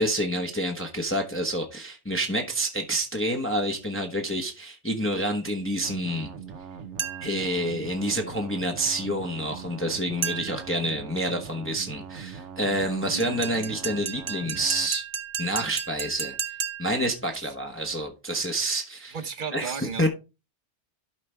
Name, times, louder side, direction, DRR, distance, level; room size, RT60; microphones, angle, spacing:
voice 1, 0.0-6.3 7.2-15.0 15.4-16.3 16.8-19.2 19.5-20.1, right 1 dB, 10° left, 1.0 m, -28 dB
sound 1, 5.8-14.9, right 6 dB, 80° right, 1.2 m, -41 dB
sound 2, 7.0-7.4 10.2-10.7 13.2-17.0, right 6 dB, 30° right, 0.6 m, -33 dB
voice 2, 13.1-13.4 17.3-17.5 19.1-20.1, right 6 dB, 45° right, 1.0 m, -35 dB
12.0 x 5.0 x 3.3 m
omnidirectional pair, 1.2 m